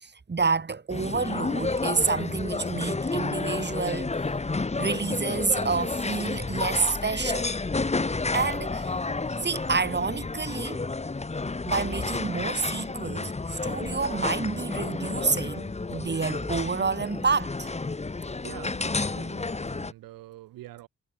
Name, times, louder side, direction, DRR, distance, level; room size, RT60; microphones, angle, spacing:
voice 1, 0.0-4.1 4.8-7.5 8.3-8.9 9.4-10.8 11.7-17.7, right 4 dB, 30° right, 2.7 m, -29 dB
sound 1, 0.9-19.9, left 3 dB, 20° left, 1.4 m, -31 dB
voice 2, 18.4-20.9, right 16 dB, 90° right, 6.8 m, -45 dB
supercardioid pair, 60°, 33 cm